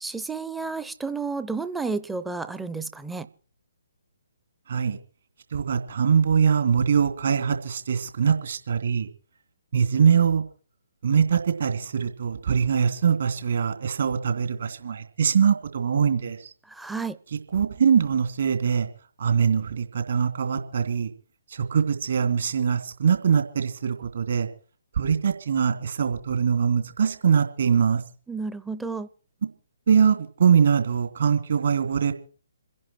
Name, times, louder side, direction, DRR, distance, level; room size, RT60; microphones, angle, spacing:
voice 1, 0.0-3.3 16.7-17.2 28.3-29.1, right 4 dB, 5° right, 12 dB, 0.7 m, -31 dB
voice 2, 5.5-9.1 9.7-10.4 11.0-16.4 17.5-18.9 19.2-21.1 21.5-24.5 25.0-28.0 29.9-32.1, right 7 dB, 50° right, 6 dB, 2.9 m, -22 dB
27.5 x 11.0 x 4.5 m, 0.41 s
figure-of-eight pair, 130°, 0 cm